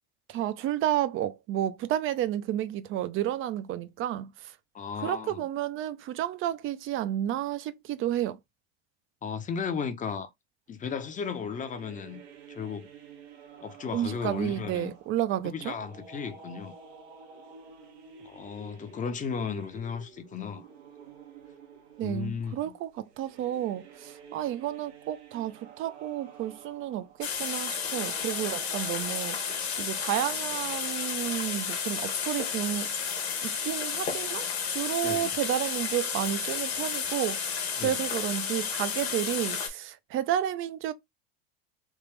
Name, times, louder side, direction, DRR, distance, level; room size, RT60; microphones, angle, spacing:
voice 1, 0.3-4.5 5.0-8.4 13.9-15.7 22.0-29.4 29.8-32.9 33.4-40.9, right 12 dB, 40° right, 0.5 m, -31 dB
voice 2, 4.7-5.4 9.2-10.3 10.7-12.2 12.5-12.9 13.6-14.9 15.4-16.7 18.2-20.7 22.0-22.7 35.0-35.3 37.8-38.0, left 6 dB, 25° left, 0.7 m, -35 dB
sound 1, 10.9-29.6, right 5 dB, 85° right, 1.1 m, -50 dB
sound 2, 27.2-39.7, left 6 dB, 90° left, 1.2 m, -32 dB
3.5 x 2.4 x 3.2 m
hypercardioid pair, 95°, 31 cm